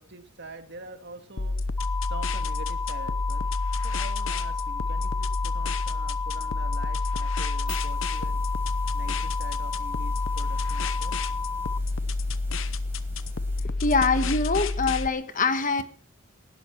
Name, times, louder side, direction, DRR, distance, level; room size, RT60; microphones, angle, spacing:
voice 1, 0.0-1.6 2.1-3.5 3.8-8.5 8.9-11.2, right 2 dB, 60° right, 7 dB, 2.1 m, -45 dB
sound 1, 1.4-15.1, left 3 dB, 75° left, 0.9 m, -29 dB
sound 2, 1.8-11.8, left 5 dB, 10° left, 0.8 m, -33 dB
sound 3, 7.4-13.6, right 1 dB, 10° right, 4.3 m, -48 dB
voice 2, 13.8-15.8, left 4 dB, 40° left, 10 dB, 1.4 m, -24 dB
19.0 x 12.5 x 4.6 m, 0.43 s
head